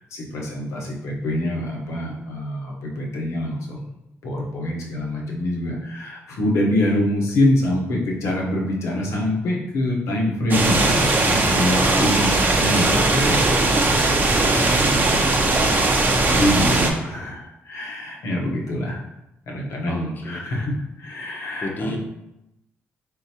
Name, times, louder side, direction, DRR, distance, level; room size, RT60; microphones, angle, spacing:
voice 1, 0.1-3.8 4.2-13.4 13.9-14.1 14.4-15.4 16.3-19.0 19.5-20.7 21.0-22.0, left 1 dB, 75° left, -1 dB, 1.0 m, -25 dB
sound 1, 10.5-16.9, right 2 dB, 40° right, 0.7 m, -19 dB
voice 2, 11.7-13.4 15.0-15.7 19.9-20.5 21.6-22.0, left 2 dB, 40° left, 2 dB, 0.8 m, -31 dB
3.8 x 3.8 x 2.8 m, 0.88 s
cardioid pair, 95°, 5 cm